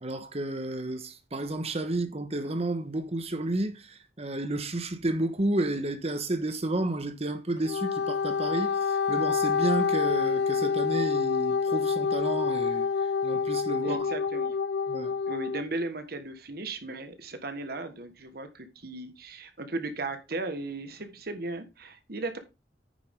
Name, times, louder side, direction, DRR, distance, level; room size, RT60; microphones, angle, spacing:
voice 1, 0.0-14.0 14.9-15.1, right 2 dB, 35° right, 1.2 m, -31 dB
Wind instrument woodwind instrument, 7.6-15.6, left 5 dB, 70° left, 0.7 m, -27 dB
voice 2, 13.8-14.6 15.3-22.4, right 2 dB, 60° right, 1.4 m, -36 dB
9.5 x 7.0 x 3.6 m
head